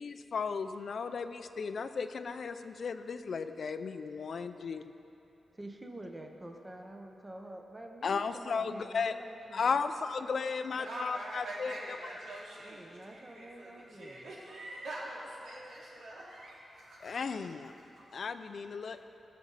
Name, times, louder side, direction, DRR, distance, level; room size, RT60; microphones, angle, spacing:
voice 1, 0.0-4.8 8.0-9.1 9.5-12.0 17.0-17.7 18.1-19.0, left 5 dB, 60° left, 10 dB, 0.4 m, -35 dB
voice 2, 5.5-9.7 12.7-14.2, right 1 dB, 15° right, 2 dB, 0.8 m, -47 dB
voice 3, 10.6-17.5 17.8-18.3, right 1 dB, 90° right, -6 dB, 2.7 m, -45 dB
18.0 x 7.3 x 4.0 m, 2.9 s
wide cardioid pair, 135°, 0 cm